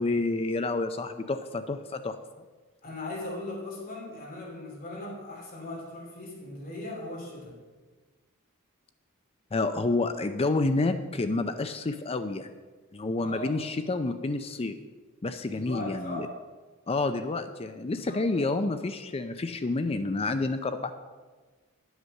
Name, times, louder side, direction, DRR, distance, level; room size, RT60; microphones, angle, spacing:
voice 1, 0.0-2.2 9.5-12.5 12.9-14.7 15.2-16.3 16.9-20.9, left 3 dB, 25° left, 9 dB, 0.5 m, -29 dB
voice 2, 2.8-7.6 13.2-13.5 15.4-16.3 18.0-18.4, left 1 dB, 40° left, -2 dB, 2.9 m, -38 dB
11.0 x 8.0 x 6.5 m, 1.3 s
head